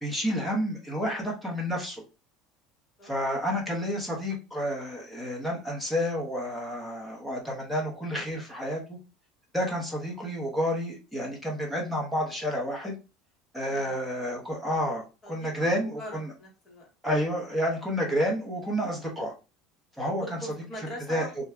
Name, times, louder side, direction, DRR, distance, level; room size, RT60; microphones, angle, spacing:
voice 1, 0.0-2.0 3.0-9.0 9.5-13.0 13.5-16.3 17.0-19.3 20.0-20.4 21.1-21.4, equal, ahead, -3 dB, 0.9 m, -30 dB
voice 2, 13.6-14.0 15.2-15.7 16.0-16.9 20.2-21.4, equal, 30° left, -2 dB, 1.4 m, -41 dB
2.7 x 2.3 x 3.4 m, 0.30 s
cardioid pair, 150°, 0 cm